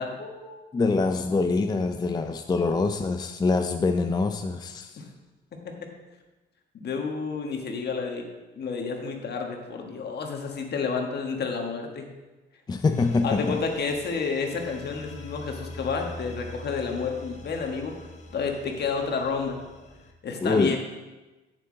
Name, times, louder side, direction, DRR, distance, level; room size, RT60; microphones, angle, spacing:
voice 1, 0.0-0.7 5.0-5.1 5.6-5.7 6.7-8.2 8.5-12.1 13.2-18.0 18.3-19.6 20.2-20.8, left 5 dB, 55° left, 2 dB, 1.4 m, -30 dB
voice 2, 0.7-5.0 12.7-13.6 20.4-20.8, left 3 dB, 20° left, 7 dB, 0.4 m, -25 dB
sound 1, 12.9-20.1, left 2 dB, 35° left, 1.1 m, -43 dB
8.3 x 7.4 x 3.8 m, 1.2 s
cardioid pair, 90°, 20 cm